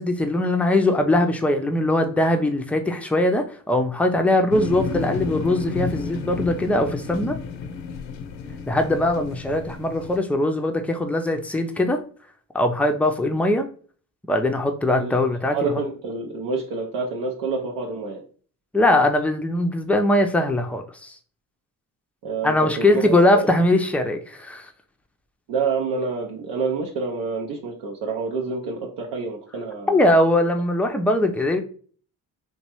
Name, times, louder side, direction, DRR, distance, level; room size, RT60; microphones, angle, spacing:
voice 1, 0.0-7.4 8.7-12.0 12.5-13.7 14.3-15.8 18.7-21.2 22.4-24.7 29.9-31.6, left 1 dB, 5° left, 5 dB, 0.4 m, -21 dB
sound 1, 4.5-10.2, left 5 dB, 80° left, 0.5 m, -31 dB
voice 2, 15.5-18.2 22.2-23.5 25.5-30.0, right 4 dB, 75° right, 0 dB, 0.7 m, -28 dB
3.0 x 2.3 x 2.9 m, 0.43 s
hypercardioid pair, 50°, 44 cm